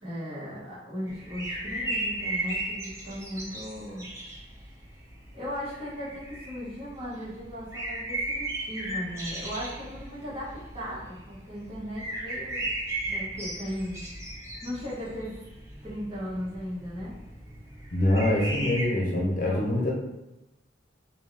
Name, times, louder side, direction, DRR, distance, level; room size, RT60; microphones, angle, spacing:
voice 1, 0.0-4.0 5.3-12.7 13.1-14.0 14.6-15.4 15.8-17.2 19.1-19.8, equal, 30° right, -9 dB, 1.4 m, -37 dB
sound 1, 1.1-18.9, right 1 dB, 15° right, 0.7 m, -36 dB
voice 2, 17.9-19.9, left 1 dB, 50° left, -3 dB, 0.8 m, -24 dB
4.0 x 2.3 x 3.5 m, 0.98 s
head